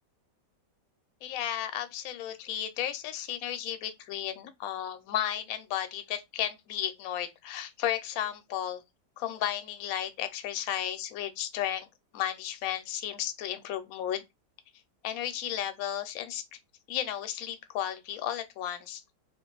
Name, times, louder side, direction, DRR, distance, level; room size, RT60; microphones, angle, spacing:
voice 1, 1.2-8.8 9.2-11.9 12.1-14.2 15.0-16.4 16.9-19.0, left 11 dB, 70° left, 0.9 m, -34 dB
2.6 x 2.4 x 3.8 m
omnidirectional pair, 1.8 m